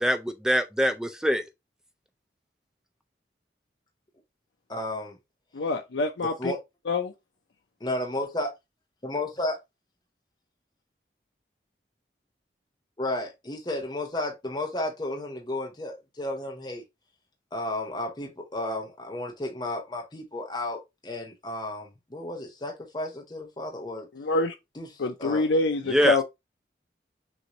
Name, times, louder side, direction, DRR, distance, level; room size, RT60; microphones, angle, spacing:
voice 1, 0.0-1.4 25.9-26.2, equal, 5° right, 0.4 m, -24 dB
voice 2, 4.7-5.1 6.4-6.6 7.8-8.5 9.0-9.6 13.0-16.8 17.5-24.1 24.8-24.9 25.2-25.5, left 1 dB, 25° left, 0.7 m, -33 dB
voice 3, 5.5-6.5 6.9-7.1 24.1-24.5 25.0-26.2, left 3 dB, 85° left, 0.5 m, -26 dB
6.1 x 2.6 x 2.8 m
head